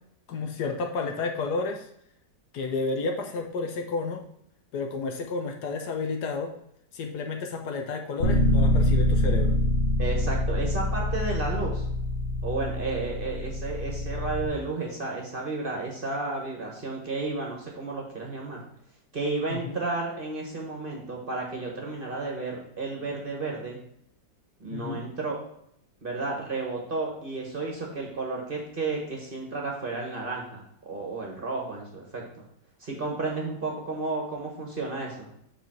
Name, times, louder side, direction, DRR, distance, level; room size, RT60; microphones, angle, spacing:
voice 1, 0.3-1.9 2.5-4.2 4.7-6.5 6.9-9.6 19.5-19.8 24.7-25.0, left 4 dB, 70° left, 3 dB, 1.3 m, -31 dB
Bass guitar, 8.2-14.5, left 1 dB, 40° left, 1.0 m, -25 dB
voice 2, 10.0-11.9 12.4-18.6 19.1-23.8 24.6-25.4 26.0-32.4 32.8-35.3, right 3 dB, 35° right, -1 dB, 1.2 m, -32 dB
5.0 x 4.6 x 6.0 m, 0.73 s
omnidirectional pair, 1.9 m